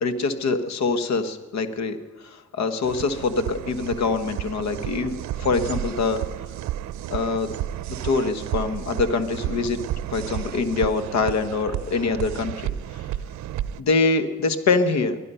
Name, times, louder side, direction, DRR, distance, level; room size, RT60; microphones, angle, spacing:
voice 1, 0.0-6.2 7.1-7.5 8.0-9.8 10.1-12.5 13.8-15.2, left 4 dB, 65° left, 10 dB, 1.3 m, -24 dB
sound 1, 2.8-13.8, right 12 dB, 65° right, 0.6 m, -32 dB
22.5 x 10.5 x 5.6 m, 1.3 s
cardioid pair, 90°, 30 cm